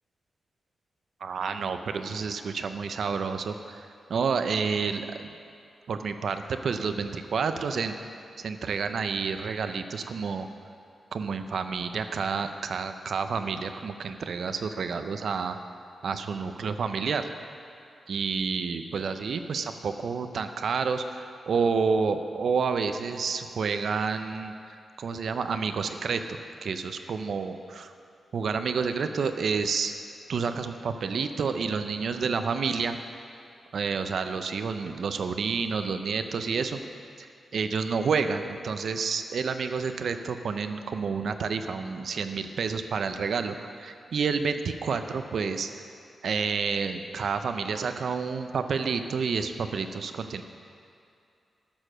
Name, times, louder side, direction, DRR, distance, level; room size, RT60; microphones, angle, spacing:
voice 1, 1.2-5.3 5.9-8.0 8.4-10.5 11.1-15.6 16.0-17.3 18.1-24.5 25.0-26.2 26.6-27.9 28.3-29.9 30.3-33.0 33.7-36.8 37.2-45.7 46.2-50.4, right 5 dB, 60° right, 8 dB, 0.6 m, -29 dB
11.5 x 6.7 x 6.2 m, 2.5 s
wide cardioid pair, 170°, 0 cm